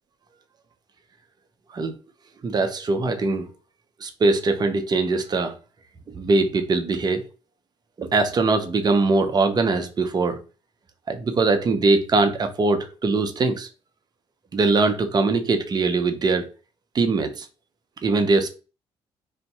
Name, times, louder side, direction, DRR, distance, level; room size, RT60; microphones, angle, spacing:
voice 1, 2.4-3.5 4.0-5.5 6.1-7.2 8.0-10.4 11.1-13.7 14.5-16.5 16.9-17.5 18.0-18.5, right 3 dB, 40° right, 0.6 m, -21 dB
2.7 x 2.1 x 4.0 m
supercardioid pair, 75°, 11 cm